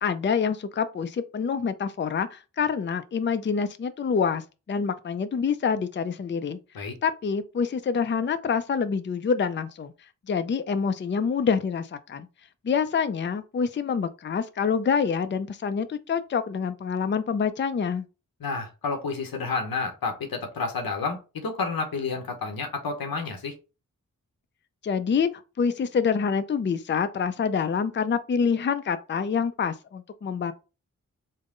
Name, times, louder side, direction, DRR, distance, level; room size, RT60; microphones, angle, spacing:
voice 1, 0.0-6.6 7.0-9.9 10.3-12.3 12.6-18.1 24.8-25.3 25.6-30.5, left 6 dB, 35° left, 0.4 m, -26 dB
voice 2, 18.4-23.6, left 4 dB, 85° left, 0.9 m, -30 dB
3.6 x 2.1 x 3.7 m
cardioid pair, 40°, 35 cm